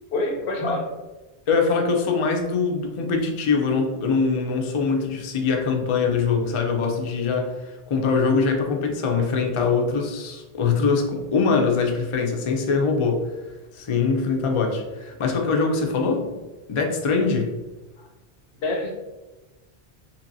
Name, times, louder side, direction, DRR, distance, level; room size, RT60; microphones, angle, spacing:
voice 1, 0.1-0.9 18.0-18.1 18.6-18.9, left 2 dB, 85° left, 1 dB, 0.9 m, -26 dB
voice 2, 1.5-13.2 13.7-16.4 16.7-17.5, left 4 dB, 50° left, 2 dB, 0.3 m, -23 dB
2.9 x 2.8 x 2.6 m, 1.1 s
omnidirectional pair, 1.1 m